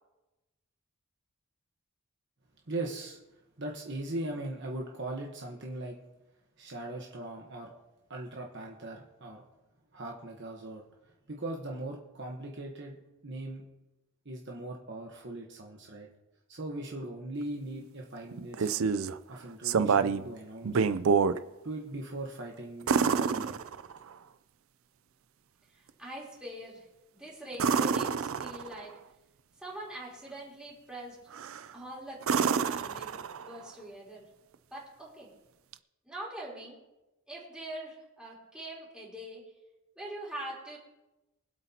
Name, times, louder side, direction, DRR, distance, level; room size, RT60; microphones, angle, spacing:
voice 1, 2.7-3.2 3.6-6.0 6.6-7.8 8.1-9.4 9.9-10.8 11.3-13.0 13.2-13.7 14.2-16.1 16.5-18.7 19.3-20.9 21.6-23.6, right 2 dB, 50° right, -1 dB, 1.2 m, -39 dB
sound 1, 18.3-19.2 19.6-20.3 20.6-21.4 22.9-24.1 27.5-28.9 31.3-31.7 32.2-33.6 35.7-35.8, right 5 dB, 70° right, 0.5 m, -27 dB
voice 2, 25.7-26.9 27.1-28.9 29.6-31.2 31.7-33.2 33.4-34.2 34.7-35.3 36.1-36.8 37.3-39.4 40.0-40.8, right 1 dB, 5° right, -6 dB, 3.6 m, -43 dB
24.0 x 8.2 x 2.9 m, 1.0 s
head